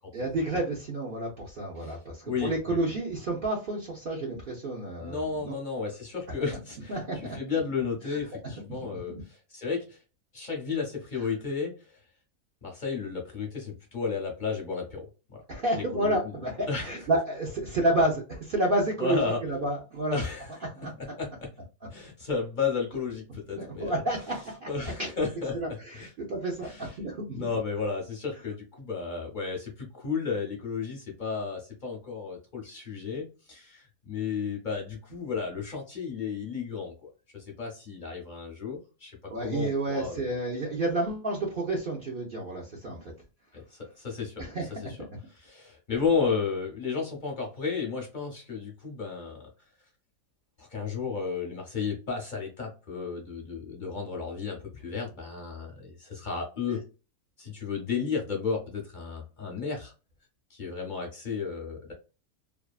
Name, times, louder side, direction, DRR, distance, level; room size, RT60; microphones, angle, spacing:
voice 1, 0.1-5.6 6.9-7.4 8.1-8.2 8.8-9.2 15.5-20.2 20.7-20.9 23.6-24.7 25.0-25.1 25.5-27.5 39.3-43.1 44.4-45.0 56.7-56.8, right 1 dB, 70° right, -2 dB, 0.5 m, -30 dB
voice 2, 2.3-2.9 5.0-10.0 10.3-12.0 12.6-15.1 15.7-16.3 16.7-17.1 19.0-19.4 20.1-20.6 21.0-21.5 21.9-24.0 24.7-26.1 26.6-26.9 27.3-39.2 39.4-40.3 43.5-44.4 44.9-45.0 45.3-49.5 50.6-56.8 57.4-59.9 60.5-61.9, left 5 dB, 50° left, 0 dB, 0.5 m, -33 dB
2.6 x 2.4 x 2.3 m, 0.31 s
omnidirectional pair, 1.7 m